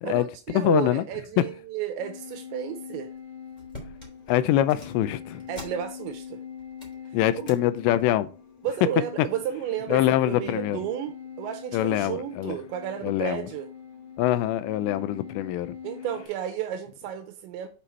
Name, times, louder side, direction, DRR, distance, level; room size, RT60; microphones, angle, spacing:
voice 1, 0.0-3.1 5.5-6.4 8.6-13.7 15.8-17.7, right 10 dB, 85° right, 3.0 m, -32 dB
voice 2, 0.5-1.0 4.3-5.4 7.1-8.3 9.9-10.8 11.7-12.6 13.0-13.5 14.2-15.8, left 13 dB, 85° left, 2.7 m, -24 dB
sound 1, 2.0-16.3, left 8 dB, 65° left, 1.7 m, -43 dB
sound 2, 3.1-3.2 3.5-6.3 6.6-7.6 8.0-8.3 9.1-9.6 10.0-10.1, left 1 dB, 10° left, 2.6 m, -46 dB
8.5 x 5.0 x 4.4 m
omnidirectional pair, 5.3 m